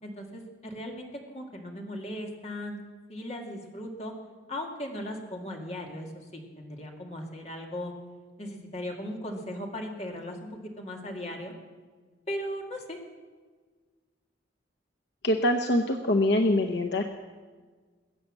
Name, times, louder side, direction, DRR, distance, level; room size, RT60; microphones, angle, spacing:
voice 1, 0.0-2.8 3.1-4.1 4.5-7.9 8.4-11.5 12.3-13.0, left 1 dB, 35° left, 1 dB, 2.2 m, -37 dB
voice 2, 15.2-17.0, left 1 dB, 65° left, 6 dB, 0.9 m, -24 dB
21.0 x 8.6 x 7.6 m, 1.4 s
head